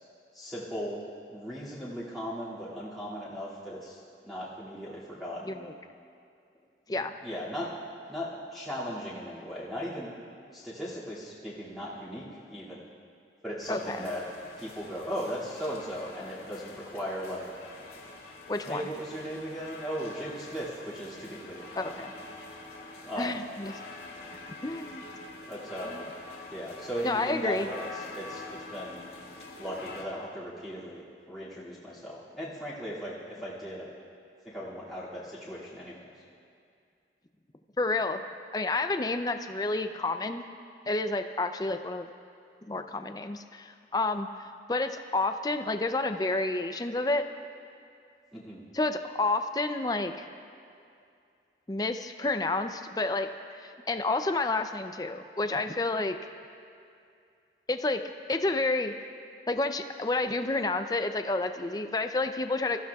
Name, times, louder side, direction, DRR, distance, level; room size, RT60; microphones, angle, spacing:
voice 1, 0.3-1.0 1.3-4.0 4.2-5.7 7.2-7.7 8.1-10.1 10.5-12.8 13.4-14.2 14.6-17.5 18.6-22.3 23.0-23.4 25.5-26.1 26.5-27.9 28.1-29.0 29.6-31.0 31.3-33.9 34.4-36.1 48.3-48.6, equal, ahead, -11 dB, 2.3 m, -37 dB
sound 1, 13.6-30.0, left 2 dB, 65° left, 2.0 m, -46 dB
voice 2, 13.7-14.1 18.5-18.9 21.8-22.1 23.2-23.7 24.6-25.1 25.8-26.0 27.0-27.7 37.8-38.2 38.5-40.4 40.9-42.1 42.6-44.3 44.7-47.3 48.7-50.3 51.7-53.3 53.6-56.2 57.7-58.0 58.3-58.9 59.5-62.8, left 2 dB, 20° left, 7 dB, 0.5 m, -30 dB
24.5 x 14.5 x 2.4 m, 2.4 s
head